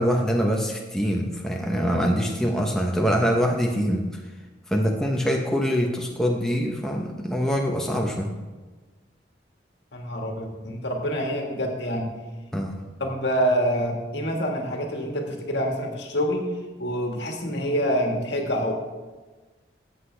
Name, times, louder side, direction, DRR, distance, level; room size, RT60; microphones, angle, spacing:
voice 1, 0.0-4.0 4.7-8.3 12.5-12.8, equal, 5° left, 0 dB, 0.8 m, -24 dB
voice 2, 9.9-12.1 13.0-16.5 16.8-18.7, equal, 70° left, 2 dB, 1.6 m, -26 dB
13.5 x 8.1 x 3.3 m, 1.3 s
head